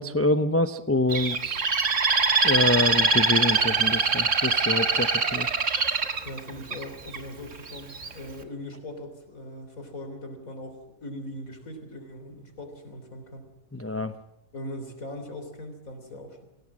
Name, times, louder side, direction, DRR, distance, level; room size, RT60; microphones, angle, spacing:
voice 1, 0.0-1.7 2.4-5.5 13.7-14.1, left 1 dB, 15° left, 9 dB, 0.5 m, -26 dB
Bird, 1.1-7.2 7.7-8.1, right 4 dB, 55° right, 2.0 m, -23 dB
voice 2, 6.2-13.5 14.5-16.4, left 1 dB, 65° left, 7 dB, 3.9 m, -40 dB
26.0 x 17.0 x 7.5 m, 0.89 s
omnidirectional pair, 1.5 m